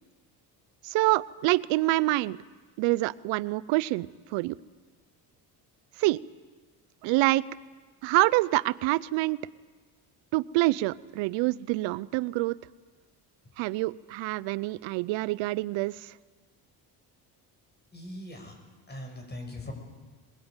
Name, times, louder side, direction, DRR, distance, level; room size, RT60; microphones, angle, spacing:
voice 1, 0.8-2.4 2.8-4.6 6.0-6.2 7.0-7.4 8.0-9.5 10.3-12.6 13.6-16.1, right 20 dB, 85° right, 19 dB, 0.7 m, -26 dB
voice 2, 17.9-18.5 18.9-19.7, left 1 dB, 20° left, 4 dB, 6.9 m, -40 dB
22.0 x 22.0 x 8.9 m, 1.4 s
cardioid pair, 95°, 44 cm